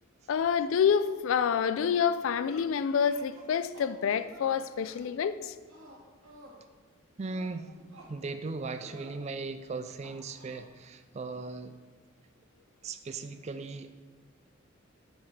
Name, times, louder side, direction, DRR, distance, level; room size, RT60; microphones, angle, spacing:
voice 1, 0.3-5.5, left 7 dB, 70° left, 14 dB, 0.3 m, -27 dB
sound 1, 1.0-2.6 3.0-5.0 5.7-6.6 7.2-8.1 8.8-9.2 10.0-10.6, right 1 dB, 80° right, 1.9 m, -53 dB
voice 2, 7.2-7.7 8.1-11.8 12.8-13.9, right 3 dB, 30° right, 10 dB, 0.3 m, -38 dB
7.2 x 7.0 x 3.3 m, 1.4 s
head